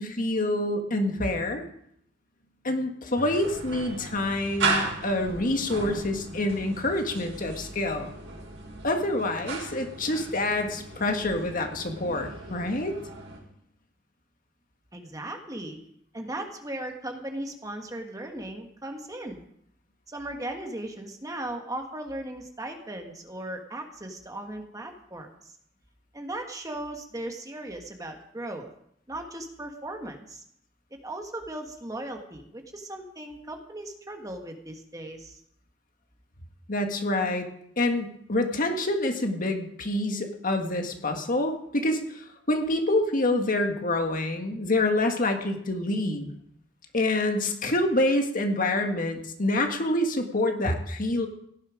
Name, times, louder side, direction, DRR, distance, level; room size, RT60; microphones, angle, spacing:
voice 1, 0.0-1.6 2.6-8.1 8.8-13.0 36.7-37.5 37.8-46.3 46.9-51.3, left 1 dB, 45° left, 4 dB, 1.7 m, -27 dB
sound 1, 3.2-13.4, right 3 dB, 75° right, 5.0 m, -35 dB
voice 2, 14.9-15.8 16.1-19.4 20.1-25.5 26.1-28.7 29.1-30.4 31.0-35.4, right 1 dB, 20° right, 3 dB, 1.5 m, -37 dB
17.0 x 11.0 x 5.1 m, 0.71 s
head